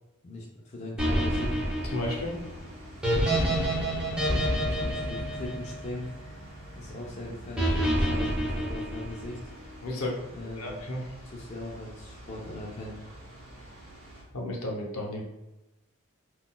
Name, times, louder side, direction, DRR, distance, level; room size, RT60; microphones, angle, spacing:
voice 1, 0.2-1.6 4.3-6.1 6.8-9.4 10.3-10.8 11.2-13.0, left 1 dB, 30° left, -3 dB, 0.3 m, -39 dB
sound 1, 1.0-6.3 7.6-9.5, equal, 5° right, 0.6 m, -28 dB
sound 2, 1.0-14.2, right 1 dB, 80° right, 0.9 m, -47 dB
voice 2, 1.9-2.4 9.8-10.1 10.4-11.1 14.3-15.2, left 1 dB, 75° left, 0 dB, 0.7 m, -33 dB
3.7 x 2.3 x 2.2 m, 0.95 s
head